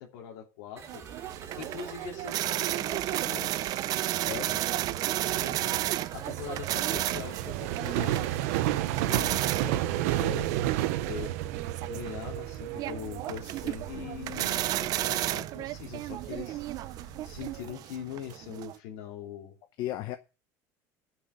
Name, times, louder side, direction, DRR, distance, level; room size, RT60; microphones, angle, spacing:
voice 1, 0.0-3.5 5.4-5.8 6.1-8.6 9.1-10.5 11.1-19.5, left 8 dB, 90° left, 2.6 m, -42 dB
sound 1, 0.8-17.7, right 6 dB, 35° right, 3.6 m, -48 dB
sound 2, 0.9-18.8, right 14 dB, 55° right, 0.5 m, -33 dB
sound 3, 1.2-17.7, right 14 dB, 90° right, 0.8 m, -34 dB
voice 2, 4.3-4.6 14.0-14.1 19.8-20.2, left 14 dB, 60° left, 0.8 m, -35 dB
10.0 x 6.2 x 8.0 m
cardioid pair, 130°, 8 cm